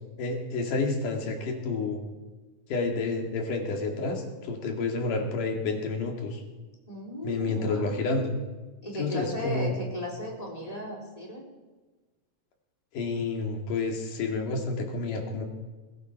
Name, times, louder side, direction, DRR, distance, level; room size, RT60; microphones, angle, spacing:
voice 1, 0.2-2.0 2.7-6.4 7.2-8.3 9.0-9.8 12.9-15.4, left 3 dB, 90° left, 2 dB, 3.9 m, -29 dB
voice 2, 6.9-8.0 8.8-11.5, left 1 dB, 10° left, -1 dB, 3.3 m, -36 dB
20.0 x 16.0 x 4.6 m, 1.2 s
omnidirectional pair, 3.6 m